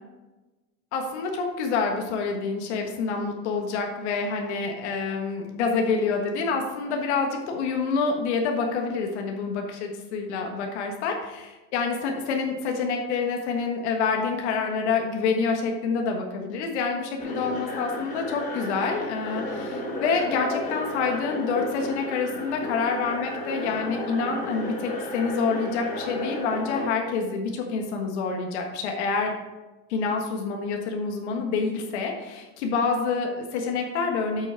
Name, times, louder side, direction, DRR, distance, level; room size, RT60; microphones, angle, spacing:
voice 1, 0.9-29.3 29.9-34.5, left 4 dB, 90° left, 2 dB, 1.4 m, -27 dB
sound 1, 17.2-26.9, left 2 dB, 25° left, 1.5 m, -33 dB
8.5 x 6.2 x 4.4 m, 1.1 s
supercardioid pair, 160°, 33 cm